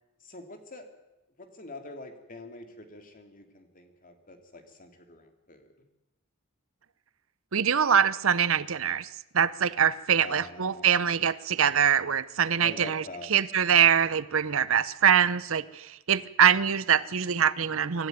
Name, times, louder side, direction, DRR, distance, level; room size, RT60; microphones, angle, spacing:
voice 1, 0.2-0.9 1.4-5.9 10.2-11.2 12.6-13.3, left 2 dB, 40° left, 5 dB, 2.8 m, -45 dB
voice 2, 7.5-9.1 9.3-13.0 13.3-18.1, right 8 dB, 70° right, 17 dB, 0.8 m, -24 dB
24.5 x 13.5 x 9.4 m, 0.97 s
head